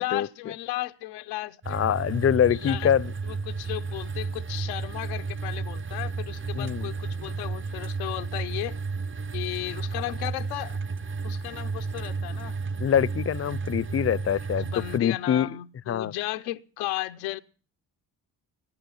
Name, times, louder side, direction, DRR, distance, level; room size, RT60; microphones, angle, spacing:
voice 1, 0.0-1.9 2.5-2.9 3.2-8.8 9.3-10.8 11.2-12.6 14.5-17.4, left 17 dB, 90° left, 0.8 m, -35 dB
sound 1, 1.6-15.0, right 4 dB, 25° right, 0.8 m, -33 dB
voice 2, 1.7-3.1 6.5-6.9 12.8-14.7 14.9-15.5 15.9-16.1, left 9 dB, 30° left, 0.6 m, -24 dB
22.0 x 10.0 x 5.5 m
hypercardioid pair, 45°, 46 cm